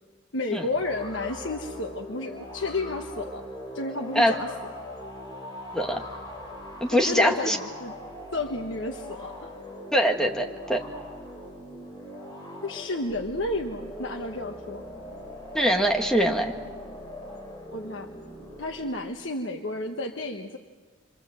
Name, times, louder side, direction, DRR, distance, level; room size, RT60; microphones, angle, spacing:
voice 1, 0.3-3.4 3.7-4.5 6.9-7.9 8.3-9.5 12.6-14.8 17.7-18.1 18.6-20.6, left 2 dB, 60° left, 3 dB, 1.4 m, -31 dB
sound 1, 0.7-19.1, left 1 dB, 20° left, 6.1 m, -41 dB
voice 2, 6.8-7.6 9.9-10.8 15.5-16.5, equal, 5° left, 3 dB, 1.8 m, -23 dB
28.5 x 24.5 x 7.7 m, 1.5 s
head